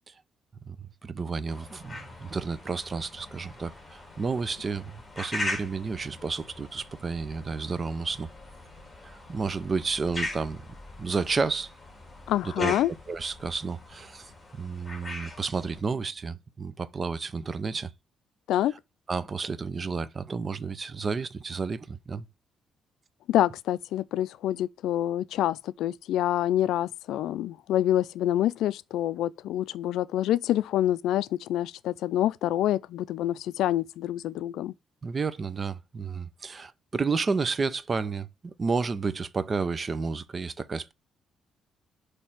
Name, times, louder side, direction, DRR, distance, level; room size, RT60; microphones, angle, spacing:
voice 1, 1.0-8.3 9.0-10.6 11.0-11.7 12.4-12.8 13.1-17.9 19.1-22.3 35.0-40.9, right 4 dB, 35° right, 0.6 m, -31 dB
Magpie on window summer morning, 1.5-15.8, left 2 dB, 20° left, 2.8 m, -41 dB
voice 2, 12.3-12.9 18.5-18.7 23.3-34.7, left 12 dB, 85° left, 0.3 m, -27 dB
6.4 x 3.3 x 5.7 m
cardioid pair, 90°, 0 cm